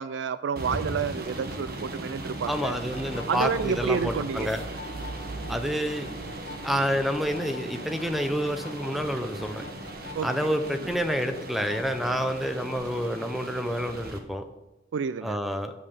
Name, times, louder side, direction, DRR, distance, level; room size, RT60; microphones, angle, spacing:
voice 1, 0.0-2.8 3.3-4.5 10.2-10.9 14.9-15.4, right 6 dB, 80° right, 15 dB, 0.4 m, -30 dB
sound 1, 0.6-14.2, right 2 dB, 55° right, 1.3 m, -38 dB
voice 2, 2.5-4.6 5.5-6.1 6.6-9.7 10.2-14.4 15.2-15.7, equal, ahead, 7 dB, 0.6 m, -28 dB
sound 2, 2.6-12.8, left 3 dB, 65° left, 1.5 m, -46 dB
9.8 x 5.5 x 6.6 m, 0.98 s
head